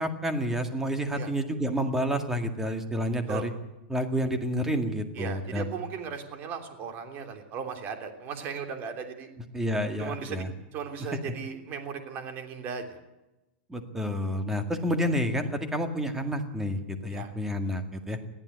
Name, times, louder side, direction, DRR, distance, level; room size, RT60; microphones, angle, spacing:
voice 1, 0.0-3.5 3.9-5.7 9.5-10.5 13.7-18.2, equal, 5° right, 6 dB, 2.0 m, -29 dB
voice 2, 5.1-9.3 10.0-10.4 10.7-13.0 17.1-17.3, right 6 dB, 30° right, 5 dB, 3.2 m, -37 dB
21.5 x 14.5 x 9.4 m, 0.98 s
supercardioid pair, 160°, 6 cm